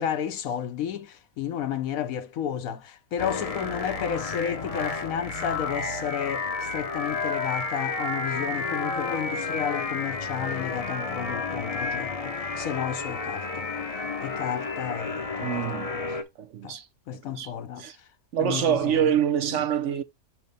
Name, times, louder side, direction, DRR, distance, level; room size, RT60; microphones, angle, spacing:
voice 1, 0.0-13.7 14.2-15.6 15.9-16.1 16.6-16.8 17.1-17.9 18.4-19.1 19.5-19.6, left 9 dB, 80° left, 1.1 m, -32 dB
sound 1, 3.2-16.2, left 4 dB, 35° left, 0.6 m, -31 dB
voice 2, 15.4-16.0 16.4-16.9 17.3-17.5 17.8-18.0 18.3-20.0, right 9 dB, 65° right, 0.9 m, -26 dB
6.6 x 2.9 x 5.2 m
omnidirectional pair, 1.5 m